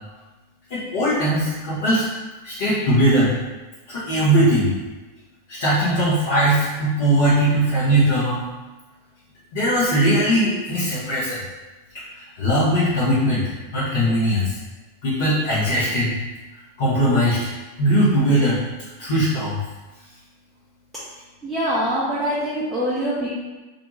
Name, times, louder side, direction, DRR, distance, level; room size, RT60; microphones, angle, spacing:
voice 1, 0.7-2.1 2.4-3.4 3.9-4.7 5.5-8.4 9.5-11.4 11.9-14.6 15.0-16.1 16.5-17.5 17.8-18.6 19.0-19.6, right 1 dB, 55° left, -9 dB, 0.8 m, -20 dB
voice 2, 21.4-23.3, equal, 5° right, -10 dB, 0.6 m, -24 dB
2.5 x 2.2 x 3.0 m, 1.2 s
figure-of-eight pair, 90°, 0 cm